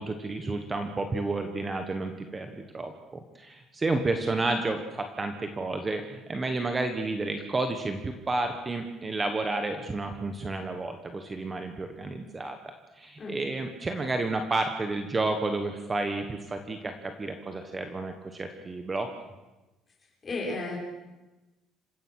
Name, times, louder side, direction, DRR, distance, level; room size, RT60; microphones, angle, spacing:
voice 1, 0.0-12.6 13.0-19.1, right 2 dB, 20° right, 6 dB, 1.4 m, -31 dB
voice 2, 20.2-20.8, left 3 dB, 25° left, -2 dB, 6.3 m, -33 dB
27.0 x 16.0 x 6.5 m, 1.1 s
cardioid pair, 155°, 0 cm